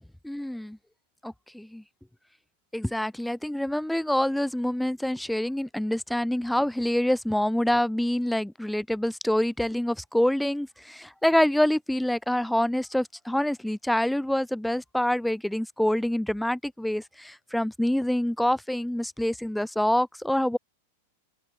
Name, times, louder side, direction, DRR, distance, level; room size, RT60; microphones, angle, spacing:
voice 1, 0.2-0.8 1.2-1.8 2.7-20.6, left 1 dB, ahead, 5.4 m, -26 dB
open air
figure-of-eight pair, 95°, 0 cm